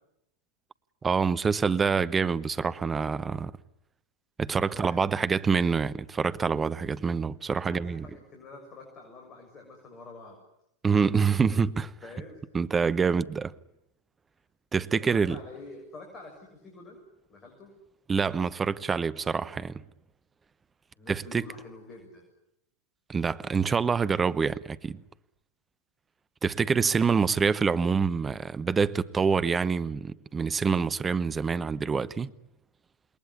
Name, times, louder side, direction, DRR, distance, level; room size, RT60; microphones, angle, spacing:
voice 1, 1.0-3.5 4.4-8.1 10.8-11.9 12.5-13.5 14.7-15.4 18.1-19.8 21.1-21.4 23.1-25.0 26.4-32.3, right 5 dB, 15° right, 1.0 m, -26 dB
voice 2, 4.7-5.3 7.7-10.4 11.4-11.6 12.0-12.4 12.9-13.1 14.8-17.0 17.3-17.7 21.0-22.2, left 3 dB, 25° left, 6.9 m, -47 dB
28.0 x 21.5 x 9.9 m
figure-of-eight pair, 90°, 0 cm